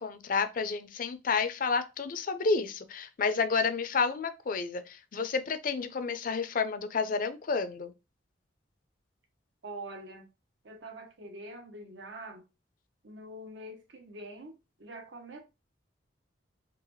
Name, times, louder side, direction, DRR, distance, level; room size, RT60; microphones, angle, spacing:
voice 1, 0.0-7.9, left 4 dB, 45° left, 0.4 m, -30 dB
voice 2, 9.6-10.3 10.6-12.5 13.0-15.4, right 1 dB, 75° right, 0.8 m, -45 dB
3.8 x 2.9 x 3.1 m
head